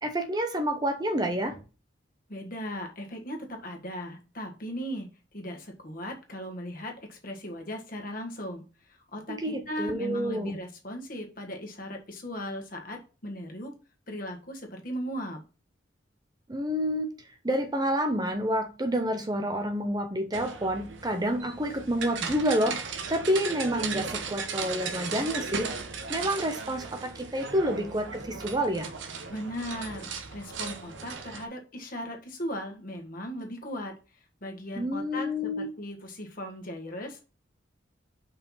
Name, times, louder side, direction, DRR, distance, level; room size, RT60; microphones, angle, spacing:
voice 1, 0.0-1.6 9.3-10.6 16.5-17.1 17.4-22.8 23.1-25.7 26.1-28.9 34.8-35.7, equal, 20° right, 0.8 m, -28 dB
voice 2, 2.3-13.7 14.1-15.4 29.3-33.9 34.4-37.2, equal, 45° left, 1.6 m, -37 dB
sound 1, 20.3-31.4, right 5 dB, 80° right, 1.1 m, -37 dB
5.5 x 4.5 x 5.6 m
head